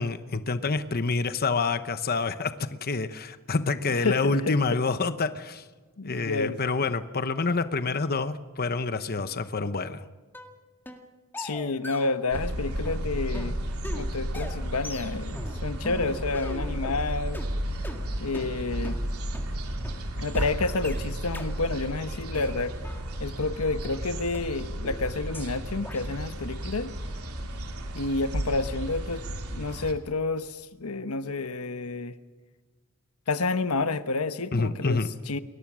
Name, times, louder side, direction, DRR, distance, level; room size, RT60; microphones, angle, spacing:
voice 1, 0.0-2.5 2.8-5.6 6.0-10.0 34.5-35.1, left 4 dB, 45° left, 11 dB, 0.9 m, -27 dB
voice 2, 4.0-4.8 6.0-6.6 11.4-13.6 13.9-17.4 18.2-19.0 20.2-22.7 23.2-26.9 27.9-29.2 29.5-32.1 33.3-35.4, left 3 dB, 85° left, 11 dB, 1.1 m, -30 dB
sound 1, 10.3-10.5 10.9-11.1 11.3-12.6 12.8-17.0 17.3-17.5 17.8-18.0 18.3-18.5 18.8-19.0 19.3-19.5 19.8-20.0 20.3-20.5 20.8-21.0 21.3-21.5 21.8-22.0 22.3-23.5 23.8-23.9 24.3-24.4 24.8-25.0 25.3-25.5 25.8-26.0, left 1 dB, 10° left, 2.1 m, -40 dB
sound 2, 12.3-29.9, right 1 dB, 85° right, 3.0 m, -33 dB
29.5 x 21.5 x 6.2 m, 1.3 s
head